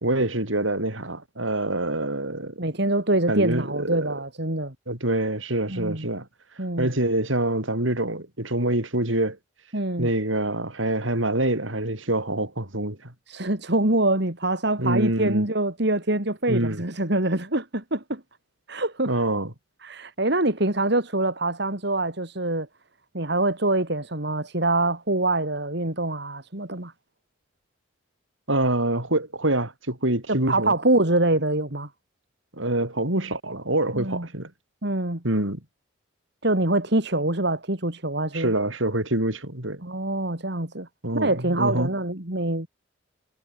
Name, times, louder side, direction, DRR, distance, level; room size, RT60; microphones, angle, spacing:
voice 1, 0.0-2.6 3.3-4.1 4.9-6.3 6.8-9.4 10.0-13.1 14.8-15.4 16.5-16.8 19.1-19.5 28.5-30.7 32.5-34.5 35.2-35.6 38.3-39.8 41.0-41.9, right 1 dB, 75° right, 5.6 m, -25 dB
voice 2, 2.6-4.7 5.7-6.1 6.6-6.9 9.7-10.1 13.3-18.2 18.7-19.1 19.8-22.7 23.1-26.9 30.3-31.9 33.9-34.3 34.8-35.2 36.4-38.5 39.8-40.9 41.1-42.7, right 2 dB, 55° right, 3.2 m, -25 dB
head